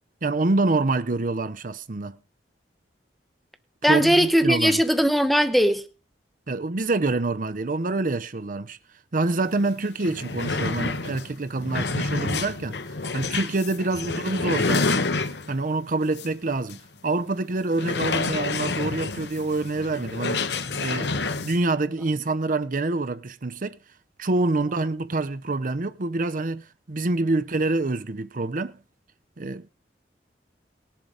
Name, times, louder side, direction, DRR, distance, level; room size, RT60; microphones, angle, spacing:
voice 1, 0.2-2.2 3.8-4.8 6.5-8.8 9.1-12.8 13.1-15.0 15.5-20.4 20.8-23.8 24.2-28.8 29.4-29.7, right 2 dB, 50° right, 0.8 m, -26 dB
voice 2, 3.8-5.8, equal, ahead, 1.1 m, -19 dB
sound 1, 9.6-9.7 10.0-15.7 16.2-16.3 16.7-16.8 17.7-21.6, left 3 dB, 75° left, 1.1 m, -28 dB
19.0 x 7.5 x 5.0 m
head